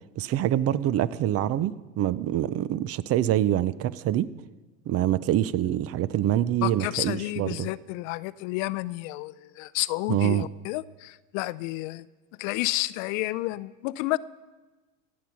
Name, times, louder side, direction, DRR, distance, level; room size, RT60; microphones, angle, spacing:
voice 1, 0.2-4.3 4.9-7.7 10.1-10.5, right 12 dB, 35° right, 18 dB, 0.4 m, -25 dB
voice 2, 6.6-12.1 12.4-14.2, left 19 dB, 65° left, 19 dB, 0.6 m, -30 dB
16.0 x 8.5 x 5.8 m, 1.2 s
supercardioid pair, 105°, 42 cm